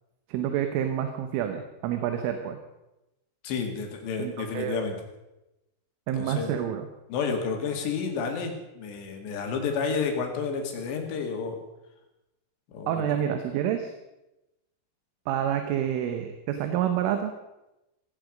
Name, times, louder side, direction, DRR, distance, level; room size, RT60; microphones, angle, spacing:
voice 1, 0.3-2.6 4.2-4.8 6.1-6.9 12.9-13.9 15.3-17.3, right 10 dB, 80° right, 6 dB, 3.6 m, -28 dB
voice 2, 3.4-5.0 6.1-6.5 7.1-11.6 12.7-13.2, left 5 dB, 65° left, 3 dB, 4.2 m, -30 dB
16.0 x 16.0 x 5.2 m, 0.96 s
omnidirectional pair, 5.8 m